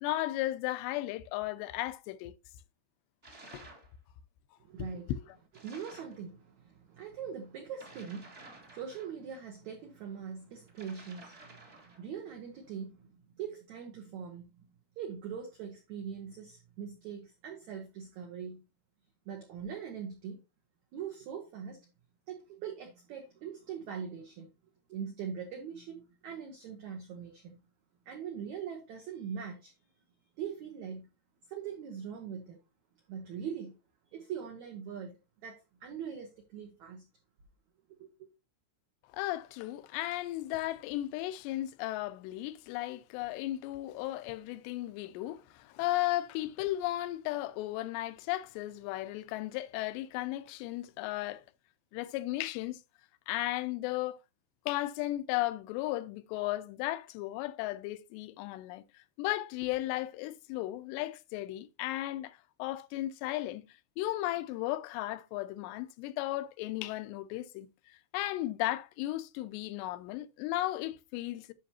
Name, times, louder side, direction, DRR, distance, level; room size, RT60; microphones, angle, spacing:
voice 1, 0.0-2.4 3.5-3.7 4.8-5.2 39.1-51.4 51.9-52.8 53.3-54.2 54.7-63.7 64.0-71.5, left 16 dB, 85° left, 2.8 m, -35 dB
sound 1, 3.2-3.9 5.5-6.2 7.7-9.4 10.7-12.1, right 2 dB, 50° right, 0.7 m, -53 dB
voice 2, 4.6-5.1 5.6-14.5 15.0-18.6 19.3-20.4 20.9-21.8 22.3-24.5 24.9-27.6 28.0-29.7 30.4-31.1 31.5-32.6 33.1-33.7 34.1-35.2 35.4-37.0 37.9-38.3, right 7 dB, 80° right, 1.6 m, -42 dB
10.0 x 6.0 x 2.8 m
omnidirectional pair, 4.9 m